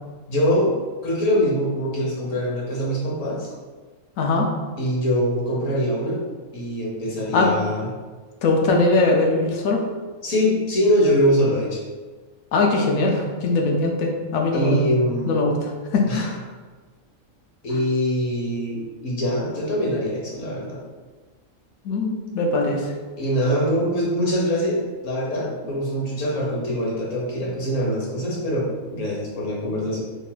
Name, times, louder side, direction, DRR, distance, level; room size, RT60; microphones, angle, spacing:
voice 1, 0.3-0.7 1.0-3.5 4.8-6.2 6.5-7.9 10.2-11.8 14.5-15.3 16.1-16.2 17.6-20.8 23.2-24.8 25.0-30.0, equal, 65° left, -2 dB, 1.1 m, -23 dB
voice 2, 4.2-4.5 7.3-7.5 8.4-9.8 12.5-14.9 15.3-16.5 21.8-22.9, left 2 dB, 85° left, 1 dB, 1.1 m, -21 dB
3.2 x 2.4 x 3.7 m, 1.4 s
omnidirectional pair, 1.4 m